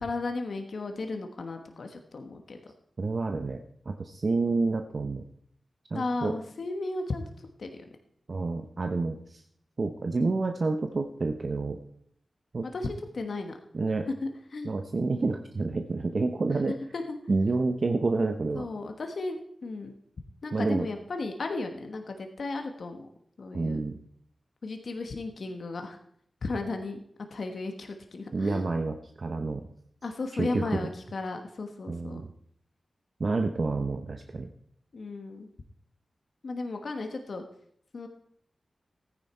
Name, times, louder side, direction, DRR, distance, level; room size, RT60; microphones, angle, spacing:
voice 1, 0.0-2.7 5.9-7.9 12.6-13.6 14.2-14.7 16.9-17.2 18.5-19.9 20.4-23.1 23.4-23.8 24.6-26.0 26.4-27.0 27.3-28.7 30.0-32.2 34.9-35.5 36.4-37.4 37.9-38.1, left 3 dB, 75° left, 5 dB, 1.2 m, -35 dB
voice 2, 3.0-3.6 3.9-5.2 5.9-6.3 8.3-9.4 9.8-11.8 12.5-12.6 13.7-14.1 14.6-16.7 17.3-18.7 20.5-20.9 23.5-24.0 28.3-29.6 30.3-30.9 31.9-32.2 33.2-34.5, right 3 dB, 60° right, 6 dB, 0.8 m, -29 dB
14.0 x 9.7 x 4.4 m, 0.67 s
cardioid pair, 40°, 0 cm